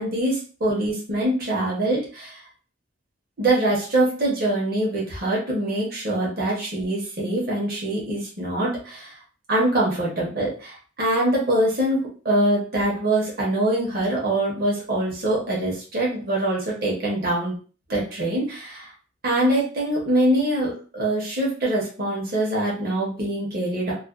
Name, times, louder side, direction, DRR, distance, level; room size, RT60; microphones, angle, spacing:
voice 1, 0.0-2.4 3.4-9.2 9.5-17.6 17.9-18.9 19.2-23.9, right 1 dB, 50° right, -5 dB, 0.9 m, -24 dB
2.4 x 2.1 x 2.4 m, 0.39 s
head